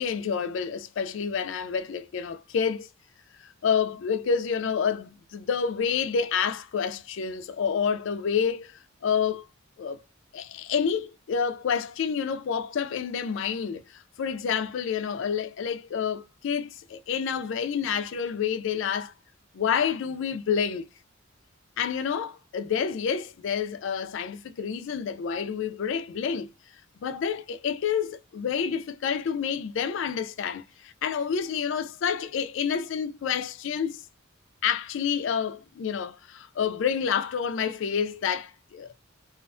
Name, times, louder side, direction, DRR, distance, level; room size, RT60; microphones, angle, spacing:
voice 1, 0.0-2.9 3.4-9.4 9.8-10.0 10.3-19.1 19.5-20.9 21.8-26.5 27.0-34.0 34.6-38.9, left 7 dB, 65° left, 0.3 m, -28 dB
2.4 x 2.1 x 2.4 m
head